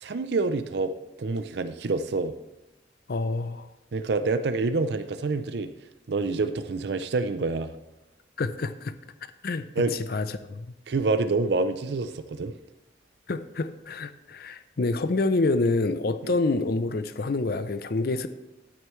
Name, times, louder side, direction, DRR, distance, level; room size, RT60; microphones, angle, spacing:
voice 1, 0.0-0.9 1.2-2.3 3.9-5.7 6.1-7.7 9.8-10.0 10.9-12.5, right 3 dB, 65° right, 11 dB, 0.5 m, -27 dB
voice 2, 3.1-3.7 8.4-9.0 9.4-10.7 13.3-18.3, left 3 dB, 55° left, 12 dB, 0.5 m, -27 dB
12.5 x 9.0 x 3.1 m, 0.97 s
head